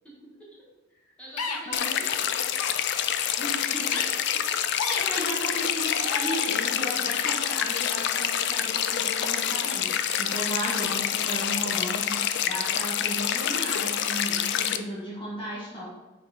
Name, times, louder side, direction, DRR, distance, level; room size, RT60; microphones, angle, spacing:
voice 1, 0.0-2.5 4.9-5.3, right 1 dB, 5° left, -6 dB, 1.6 m, -47 dB
sound 1, 1.4-1.6 2.5-2.7 3.9-4.0 4.8-5.0 5.7-6.6 7.2-7.3, left 5 dB, 80° left, 0.7 m, -32 dB
sound 2, 1.7-14.8, left 9 dB, 50° left, 0.3 m, -27 dB
voice 2, 3.4-3.9 4.3-4.4 4.9-15.9, equal, 25° left, -8 dB, 1.4 m, -35 dB
6.1 x 4.2 x 4.1 m, 1.1 s
head